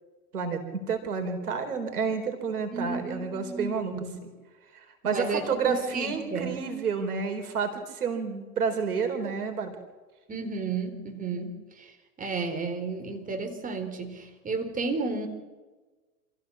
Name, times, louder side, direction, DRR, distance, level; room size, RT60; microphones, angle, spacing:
voice 1, 0.3-3.9 4.2-4.3 4.7-9.7, right 5 dB, 85° right, 6 dB, 3.9 m, -30 dB
voice 2, 2.7-4.2 5.0-6.6 10.3-11.9 12.2-15.3, right 4 dB, 20° right, 5 dB, 4.2 m, -33 dB
27.5 x 15.5 x 7.2 m, 1.3 s
hypercardioid pair, 100°, 44 cm